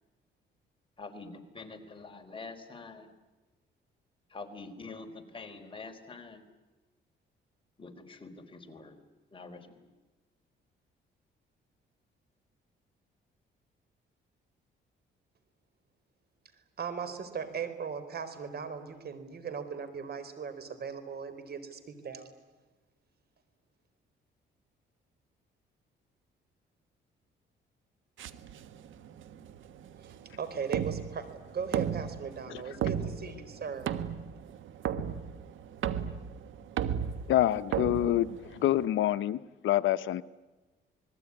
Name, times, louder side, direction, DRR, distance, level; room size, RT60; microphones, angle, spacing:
voice 1, 1.0-3.1 4.3-6.4 7.8-9.0 9.3-9.8, left 3 dB, 25° left, 4 dB, 4.3 m, -46 dB
voice 2, 16.8-22.3 30.0-33.9, right 6 dB, 55° right, 11 dB, 4.4 m, -38 dB
sound 1, 28.2-38.9, right 9 dB, 80° right, 1.6 m, -36 dB
voice 3, 37.3-38.4 38.6-39.4 39.6-40.2, left 13 dB, 75° left, 13 dB, 0.8 m, -26 dB
28.0 x 20.5 x 9.9 m, 1.2 s
cardioid pair, 90°, 20 cm